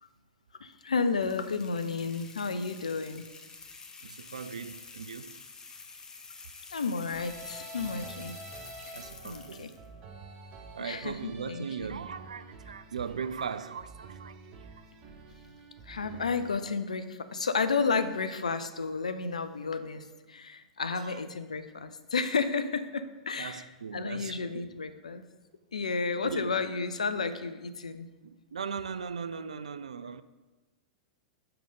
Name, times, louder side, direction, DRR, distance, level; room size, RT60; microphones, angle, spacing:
voice 1, 0.6-3.3 6.7-8.4 8.8-8.9 9.2-9.7 10.8-11.9 15.9-23.7 23.9-25.2 25.7-28.1, left 4 dB, 80° left, 0.5 m, -32 dB
sound 1, 1.1-9.9, left 4 dB, 20° left, 0.8 m, -48 dB
voice 2, 4.0-5.4 8.9-9.7 10.7-14.7 20.9-21.2 23.4-24.7 25.9-26.0 26.2-26.7 28.2-30.2, right 6 dB, 80° right, 0.3 m, -39 dB
sound 2, 7.1-16.6, right 3 dB, 40° right, 0.8 m, -48 dB
5.8 x 5.2 x 4.9 m
figure-of-eight pair, 95°, 4 cm